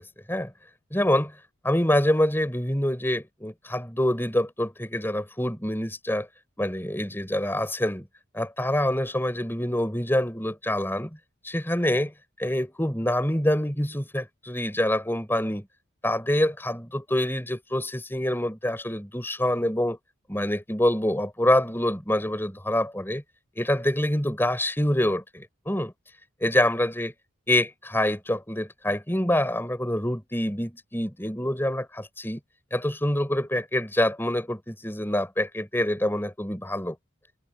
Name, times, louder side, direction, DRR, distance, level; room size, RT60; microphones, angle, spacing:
voice 1, 0.9-1.3 1.6-6.3 6.6-8.1 8.3-11.2 11.4-12.1 12.4-15.7 16.0-20.0 20.3-23.2 23.6-25.9 26.4-27.1 27.5-32.4 32.7-37.0, left 1 dB, 10° left, 4.3 m, -26 dB
head